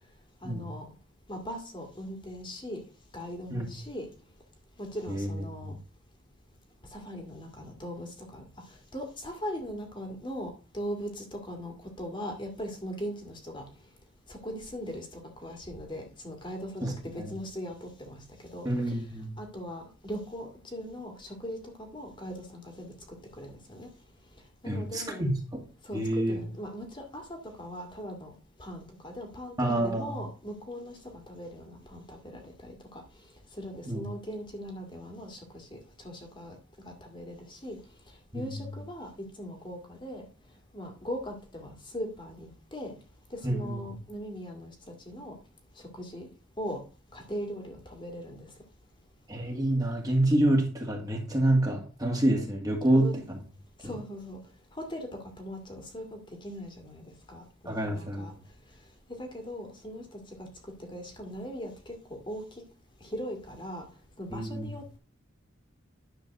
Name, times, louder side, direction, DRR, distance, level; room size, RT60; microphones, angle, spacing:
voice 1, 0.4-0.9 1.3-2.8 3.1-4.1 4.8-5.8 6.9-8.4 8.9-13.6 14.3-15.1 15.4-18.2 18.5-19.0 19.4-21.6 21.9-22.9 23.4-23.9 24.6-25.2 25.8-27.2 27.6-28.3 28.6-33.0 33.6-35.8 36.0-36.6 36.9-37.8 38.3-39.1 39.4-40.3 40.7-42.9 43.3-44.7 45.1-45.3 45.9-46.3 46.6-46.8 47.1-48.5 52.9-53.2 53.8-54.4 54.8-57.0 57.3-58.3 59.1-60.5 60.9-62.4 63.0-63.9 64.2-65.0, equal, 25° left, 2 dB, 2.1 m, -39 dB
voice 2, 16.8-17.3 18.6-19.3 24.6-25.6 25.9-26.4 29.6-30.1 33.9-34.0 38.3-38.5 43.4-43.8 49.3-53.1 53.8-53.9 57.7-58.3 64.3-64.7, right 1 dB, 20° right, 0 dB, 2.0 m, -27 dB
10.5 x 3.9 x 6.7 m, 0.35 s
head